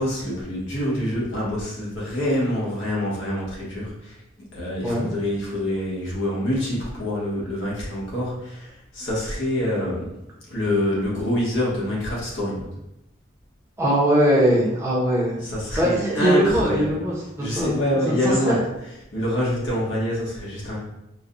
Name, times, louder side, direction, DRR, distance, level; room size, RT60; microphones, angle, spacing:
voice 1, 0.0-4.2 4.5-10.2 10.5-12.7 15.4-16.9 17.4-18.6 19.1-20.8, left 1 dB, 75° left, -5 dB, 1.2 m, -26 dB
voice 2, 13.8-15.4 15.8-17.7 18.0-18.6, equal, 15° right, -6 dB, 0.7 m, -21 dB
4.6 x 2.2 x 2.6 m, 0.87 s
head